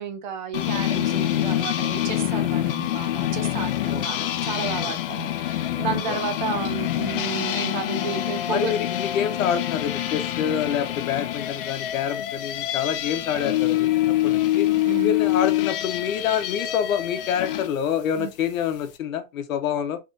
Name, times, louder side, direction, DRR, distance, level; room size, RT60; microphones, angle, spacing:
voice 1, 0.0-8.8 14.8-15.1 18.2-18.3, right 6 dB, 35° right, 0.5 m, -32 dB
sound 1, 0.5-17.7, left 13 dB, 45° left, 0.4 m, -26 dB
voice 2, 3.9-4.3 4.8-5.0 6.1-6.2 8.5-14.7 15.0-20.0, left 8 dB, 75° left, 0.9 m, -27 dB
3.8 x 3.1 x 2.5 m
supercardioid pair, 170°, 40 cm